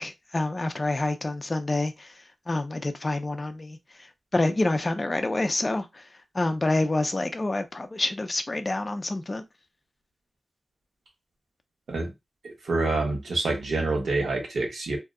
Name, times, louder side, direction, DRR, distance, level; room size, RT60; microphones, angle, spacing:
voice 1, 0.0-2.1 2.5-3.8 4.3-6.0 6.3-9.4, left 2 dB, 25° left, 0.4 m, -27 dB
voice 2, 12.4-15.0, right 3 dB, 80° right, 1.1 m, -27 dB
2.6 x 2.1 x 3.6 m
wide cardioid pair, 135°, 0 cm